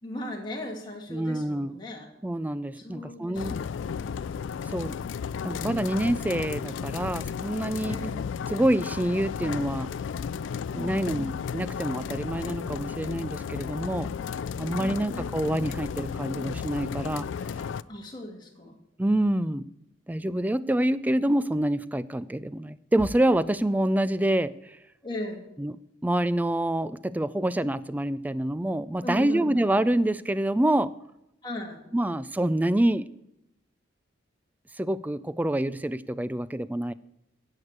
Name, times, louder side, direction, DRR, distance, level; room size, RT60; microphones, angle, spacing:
voice 1, 0.0-2.1 2.8-4.2 7.9-8.3 10.7-11.3 14.8-15.3 17.9-18.8 25.0-25.4 29.0-29.7 31.4-31.8, left 1 dB, 25° left, 0 dB, 2.2 m, -37 dB
voice 2, 1.1-1.8 2.2-3.5 4.7-5.0 5.4-8.0 8.5-9.9 10.7-14.1 14.6-17.3 19.0-19.6 20.1-24.8 25.6-25.8 26.0-30.9 31.9-33.1 34.8-36.9, right 1 dB, 10° right, 16 dB, 0.3 m, -26 dB
sound 1, 3.3-17.8, left 6 dB, 85° left, 0.3 m, -34 dB
11.0 x 6.7 x 8.7 m, 0.85 s
head